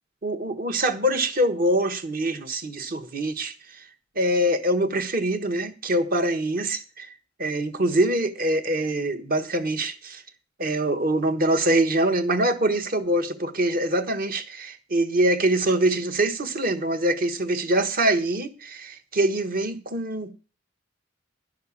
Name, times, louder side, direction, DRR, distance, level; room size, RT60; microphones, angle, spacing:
voice 1, 0.2-3.5 4.1-7.1 7.4-10.2 10.6-20.3, right 1 dB, 50° right, 1.3 m, -24 dB
12.0 x 6.6 x 8.5 m
head